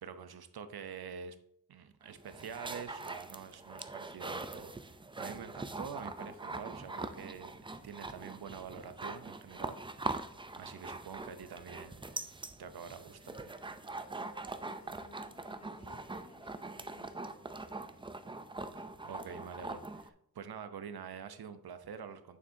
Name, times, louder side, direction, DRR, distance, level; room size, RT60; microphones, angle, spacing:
voice 1, 0.0-1.4 1.7-4.7 5.2-7.5 7.8-9.8 10.6-12.0 12.6-13.5 18.8-22.4, right 7 dB, 70° right, 10 dB, 0.7 m, -46 dB
sound 1, 2.1-20.1, right 2 dB, 15° right, 0.3 m, -43 dB
sound 2, 5.6-16.8, right 1 dB, 45° left, 2.6 m, -71 dB
Wind instrument woodwind instrument, 7.3-12.3 13.0-18.0, right 1 dB, 35° right, 2.5 m, -66 dB
voice 2, 14.5-18.0 18.3-18.4, left 2 dB, 15° left, 4 dB, 1.1 m, -59 dB
8.7 x 7.2 x 2.7 m, 0.72 s
wide cardioid pair, 125°, 39 cm